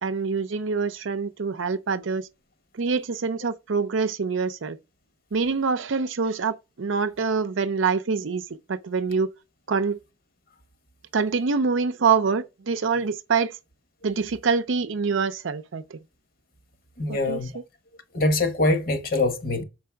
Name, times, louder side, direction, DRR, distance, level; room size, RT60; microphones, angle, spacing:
voice 1, 0.0-2.3 2.7-4.8 5.3-9.3 9.7-10.0 11.1-13.6 14.0-16.0 17.1-17.4, right 5 dB, 70° right, 0.5 m, -25 dB
voice 2, 17.0-17.5 18.1-19.6, left 2 dB, 45° left, 1.1 m, -23 dB
6.7 x 4.6 x 3.4 m
head